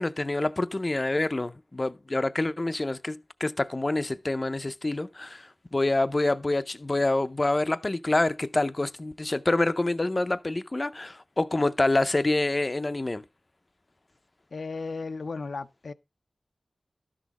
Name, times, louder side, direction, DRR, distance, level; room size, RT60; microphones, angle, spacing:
voice 1, 0.0-13.2, left 2 dB, 35° left, 0.5 m, -27 dB
voice 2, 14.5-15.9, left 4 dB, 85° left, 0.5 m, -35 dB
12.0 x 6.3 x 4.1 m
wide cardioid pair, 90°, 0 cm